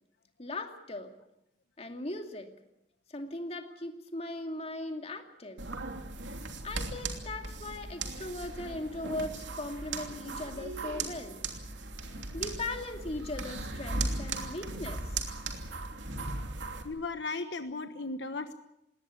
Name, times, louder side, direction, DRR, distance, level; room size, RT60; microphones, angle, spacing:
voice 1, 0.4-1.1 1.8-2.5 3.1-5.6 6.6-11.4 12.3-15.0, left 2 dB, 35° left, 5 dB, 2.5 m, -39 dB
sound 1, 5.6-16.8, right 3 dB, 85° right, 2.9 m, -37 dB
voice 2, 16.8-18.5, left 3 dB, 75° left, 8 dB, 1.2 m, -36 dB
20.5 x 18.0 x 8.5 m, 0.83 s
head